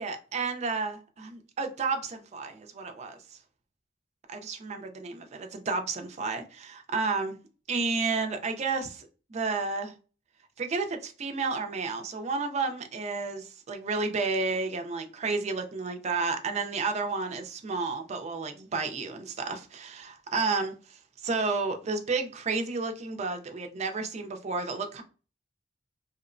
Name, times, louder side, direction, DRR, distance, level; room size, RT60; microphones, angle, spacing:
voice 1, 0.0-3.4 4.3-7.4 7.7-9.9 10.6-25.0, right 4 dB, 35° right, 0.4 m, -31 dB
2.9 x 2.0 x 2.4 m
head